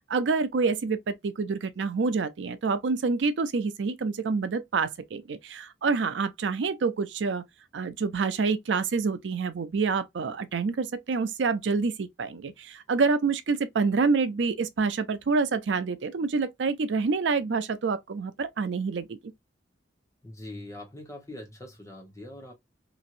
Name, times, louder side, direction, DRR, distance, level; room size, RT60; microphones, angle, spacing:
voice 1, 0.0-7.4 7.7-19.2, right 4 dB, 85° right, 0.5 m, -27 dB
voice 2, 20.2-22.5, left 1 dB, 15° left, 1.0 m, -42 dB
3.0 x 2.6 x 2.5 m
head